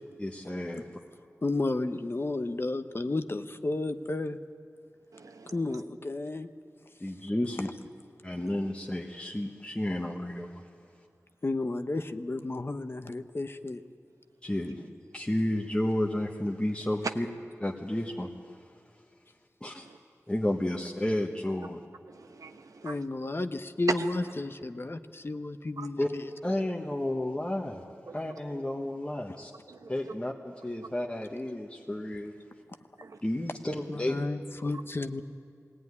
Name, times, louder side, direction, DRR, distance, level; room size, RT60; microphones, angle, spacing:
voice 1, 0.2-0.8 7.0-7.7 8.2-10.6 14.4-17.3 17.6-18.3 19.6-19.9 20.3-21.8 26.0-26.1 26.4-27.8 28.1-29.5 29.9-32.3 33.2-34.1, left 1 dB, 20° left, 1.3 m, -31 dB
voice 2, 1.4-4.4 5.5-6.5 11.4-13.8 22.8-26.3 29.3-29.4 33.9-35.2, left 2 dB, 40° left, 0.9 m, -32 dB
voice 3, 5.1-5.6 22.1-22.9 24.0-24.1 25.8-25.9 28.1-28.2 29.7-29.9 33.0-33.2, right 4 dB, 90° right, 1.0 m, -45 dB
20.5 x 17.0 x 9.6 m
wide cardioid pair, 75°, 6 cm